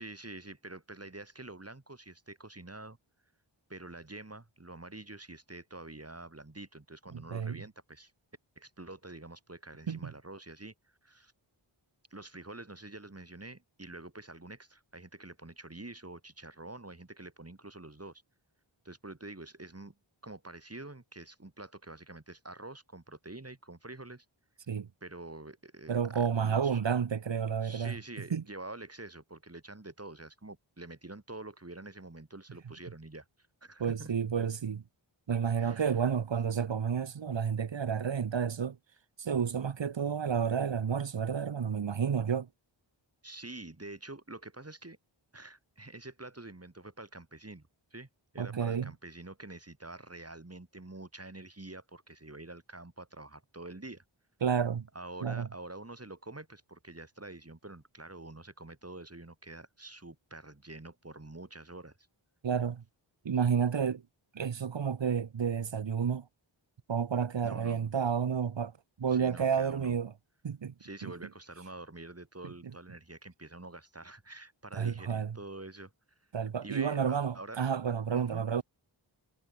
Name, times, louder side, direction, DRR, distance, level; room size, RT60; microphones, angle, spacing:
voice 1, 0.0-3.0 3.7-8.1 8.6-10.7 11.0-11.3 12.1-18.2 18.8-19.9 20.2-24.2 25.0-26.9 27.6-33.3 33.6-34.1 35.5-35.9 43.2-45.0 45.3-48.1 48.3-54.0 54.9-62.0 67.4-67.9 69.1-70.0 70.8-75.9 76.6-77.6 78.1-78.6, right 2 dB, 30° right, 2.9 m, -47 dB
voice 2, 7.1-7.6 9.9-10.1 24.7-24.9 25.9-27.9 28.3-28.4 33.8-34.8 35.3-38.8 39.2-42.5 48.4-48.9 54.4-54.9 55.2-55.5 62.4-62.8 63.2-64.0 64.3-66.2 66.9-68.7 69.0-70.1 70.4-70.7 71.0-71.1 74.7-75.4 76.3-78.6, right 7 dB, 65° right, 0.9 m, -30 dB
wide cardioid pair, 45°, 49 cm